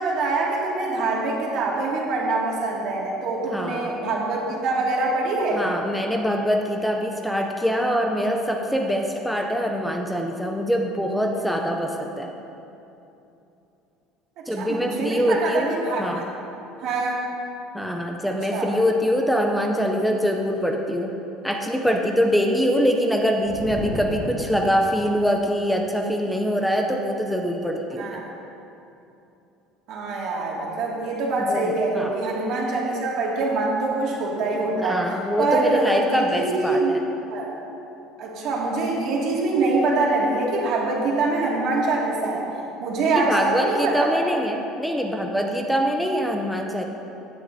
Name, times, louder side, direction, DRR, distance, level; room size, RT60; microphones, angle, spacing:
voice 1, 0.0-5.6 14.4-16.2 16.8-17.2 18.5-18.7 28.0-28.2 29.9-35.0 35.4-37.5 38.2-42.5 42.8-44.2, right 3 dB, 50° right, -3 dB, 2.1 m, -24 dB
voice 2, 3.5-3.9 5.5-12.3 14.5-15.7 16.0-16.2 17.7-21.1 21.4-28.2 31.4-32.1 34.8-37.0 43.1-46.8, equal, ahead, 2 dB, 0.5 m, -24 dB
sound 1, 23.4-25.1, left 1 dB, 25° left, 2.4 m, -33 dB
16.0 x 9.3 x 2.7 m, 2.9 s
cardioid pair, 175°, 0 cm